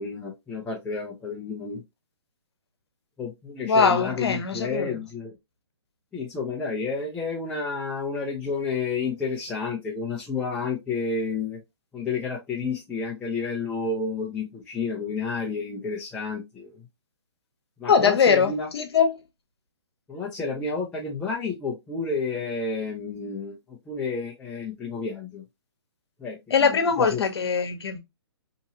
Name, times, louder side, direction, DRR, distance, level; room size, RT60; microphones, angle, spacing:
voice 1, 0.0-1.8 3.2-5.3 6.1-11.6 11.9-16.8 17.8-18.7 20.1-25.4 26.2-27.2, left 4 dB, 5° left, 0.4 m, -30 dB
voice 2, 3.7-4.9 17.9-19.1 26.5-28.0, left 6 dB, 65° left, 0.9 m, -21 dB
2.9 x 2.6 x 2.7 m
hypercardioid pair, 145°, 14 cm